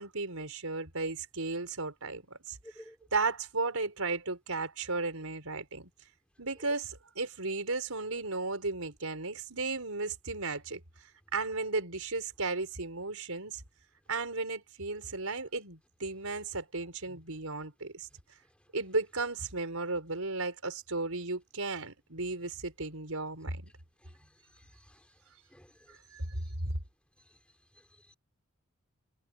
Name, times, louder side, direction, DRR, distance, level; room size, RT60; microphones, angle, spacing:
voice 1, 0.0-2.6 3.1-5.9 6.4-13.6 14.1-18.1 18.7-23.7 25.9-26.7, right 3 dB, 90° right, 5.3 m, -35 dB
voice 2, 2.6-3.0 24.0-24.3 24.5-25.1 25.5-26.2, equal, 5° left, 3.6 m, -55 dB
head